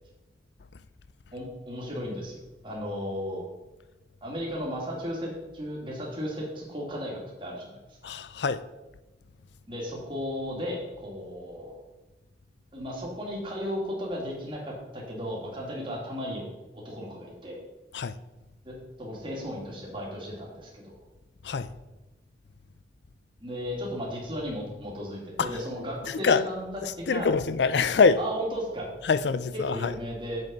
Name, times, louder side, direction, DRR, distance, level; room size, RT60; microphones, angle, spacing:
voice 1, 1.3-3.4 4.2-7.8 9.7-11.7 12.7-16.5 16.7-17.6 18.6-21.0 23.4-26.7 27.0-27.3 28.2-28.9 29.7-30.4, equal, 30° right, 2.7 m, -35 dB
voice 2, 8.0-8.6 17.9-18.2 21.4-21.7 25.4-25.5 26.1-26.4 26.8-28.2 29.0-29.9, left 5 dB, 80° left, 0.5 m, -24 dB
7.8 x 7.6 x 5.3 m
head